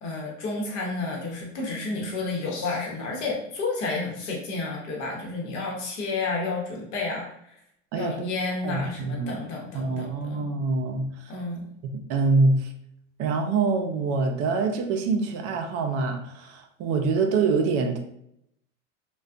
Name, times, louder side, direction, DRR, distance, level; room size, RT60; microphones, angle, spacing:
voice 1, 0.0-7.3 7.9-10.5 11.3-11.7, left 3 dB, 75° left, -2 dB, 0.9 m, -31 dB
voice 2, 7.9-8.3 8.6-9.4 9.7-11.3 11.9-12.7 13.2-18.0, right 4 dB, 45° right, 4 dB, 0.4 m, -25 dB
2.4 x 2.2 x 2.4 m, 0.74 s
supercardioid pair, 105°, 36 cm